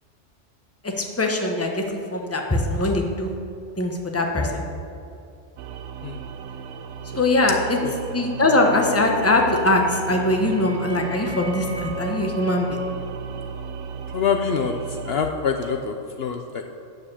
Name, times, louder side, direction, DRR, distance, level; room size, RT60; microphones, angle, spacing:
voice 1, 0.8-3.4 3.8-4.6 7.1-7.8 8.1-12.8, left 2 dB, 15° left, 2 dB, 0.9 m, -22 dB
sound 1, 5.6-15.2, right 6 dB, 85° right, 0.9 m, -35 dB
sound 2, 9.9-15.4, right 1 dB, 35° right, 1.7 m, -38 dB
voice 2, 14.1-14.7 15.0-16.6, left 6 dB, 65° left, 5 dB, 0.8 m, -25 dB
9.3 x 7.1 x 7.0 m, 2.6 s
omnidirectional pair, 1.2 m